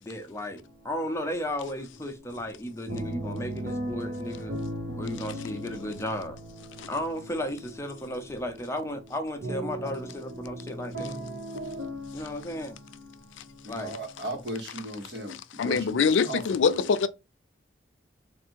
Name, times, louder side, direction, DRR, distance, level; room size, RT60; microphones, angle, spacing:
voice 1, 0.0-4.6 5.0-6.4 6.9-11.1 12.1-12.8 13.7-14.0, left 1 dB, 15° left, 0.6 m, -34 dB
sound 1, 0.6-1.4 1.6-14.4, right 1 dB, 85° right, 1.3 m, -38 dB
voice 2, 13.6-16.9, right 1 dB, 65° right, 1.2 m, -37 dB
voice 3, 15.6-17.1, left 5 dB, 85° left, 0.4 m, -24 dB
3.5 x 2.5 x 4.4 m
head